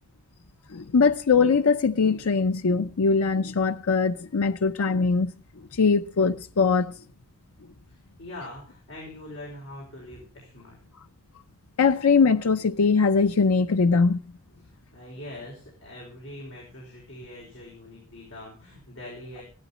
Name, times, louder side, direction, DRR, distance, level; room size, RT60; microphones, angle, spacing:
voice 1, 0.7-5.4 5.7-6.9 11.8-14.2, left 4 dB, 80° left, 0.6 m, -21 dB
voice 2, 7.9-10.8 14.9-19.4, left 1 dB, 60° left, 5.0 m, -43 dB
15.0 x 12.0 x 4.1 m
head